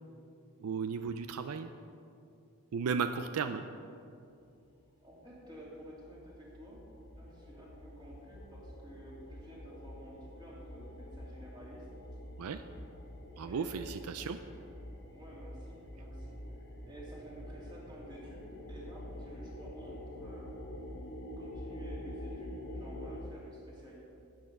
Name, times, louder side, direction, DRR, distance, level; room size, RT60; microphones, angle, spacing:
voice 1, 0.6-1.7 2.7-3.6 12.4-12.6 13.4-14.4, right 6 dB, 75° right, 10 dB, 0.4 m, -35 dB
sound 1, 4.7-4.8 5.0-23.3, left 1 dB, 55° left, 1.5 m, -46 dB
voice 2, 5.0-6.8 7.1-11.8 13.3-14.6 15.1-20.6 21.4-24.1, right 1 dB, 20° right, -5 dB, 2.9 m, -52 dB
12.5 x 8.8 x 5.2 m, 2.6 s
head